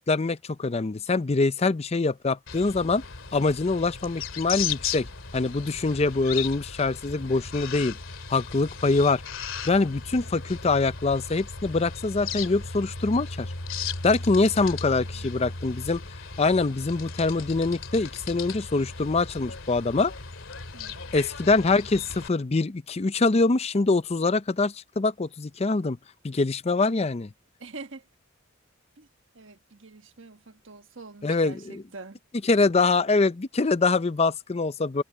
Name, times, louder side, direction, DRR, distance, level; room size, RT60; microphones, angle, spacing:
voice 1, 0.0-3.0 3.3-5.1 5.3-8.0 8.3-9.2 9.6-13.5 14.0-16.0 16.4-20.1 21.1-26.0 26.2-27.3 31.2-31.8 32.5-35.0, left 3 dB, 30° left, 0.5 m, -24 dB
sound 1, 2.5-22.3, left 5 dB, 80° left, 2.5 m, -36 dB
voice 2, 14.8-15.3 20.7-21.1 27.6-28.1 29.0-29.1 29.3-32.2, right 3 dB, 70° right, 1.4 m, -45 dB
head